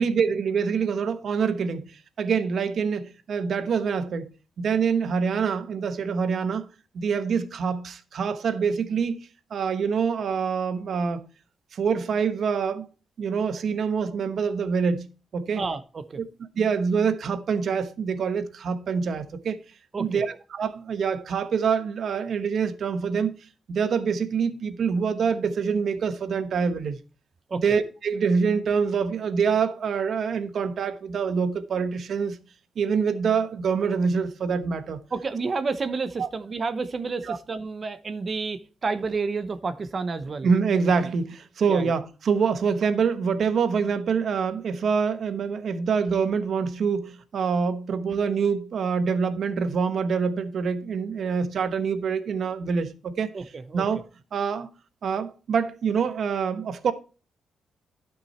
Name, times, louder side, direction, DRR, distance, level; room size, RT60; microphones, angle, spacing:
voice 1, 0.0-4.3 4.6-6.6 6.9-11.2 11.7-12.9 13.2-15.1 15.3-15.6 16.2-16.3 16.6-19.6 20.0-23.3 23.7-27.0 27.6-32.4 32.8-35.0 36.2-36.3 37.3-37.4 40.4-53.3 53.7-54.0 54.3-54.7 55.0-56.9, right 6 dB, 60° right, 1.1 m, -25 dB
voice 2, 15.6-16.2 19.9-20.4 27.5-27.7 35.1-40.5 41.0-41.1 41.7-42.0 48.1-48.2 53.3-53.8, right 4 dB, 35° right, 0.9 m, -30 dB
12.0 x 6.2 x 4.3 m
cardioid pair, 130°, 0 cm